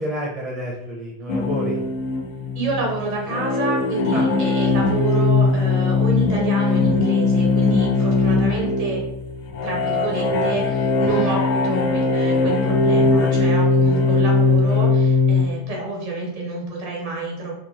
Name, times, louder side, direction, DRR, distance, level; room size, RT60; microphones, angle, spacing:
voice 1, 0.0-1.8 4.1-4.3 8.0-8.1, equal, 15° right, -4 dB, 0.6 m, -29 dB
sound 1, 1.3-15.4, left 3 dB, 45° left, 0.4 m, -19 dB
voice 2, 2.5-9.0 9.6-17.5, right 3 dB, 50° right, -2 dB, 1.0 m, -28 dB
2.9 x 2.1 x 2.4 m, 0.81 s
figure-of-eight pair, 90°, 0 cm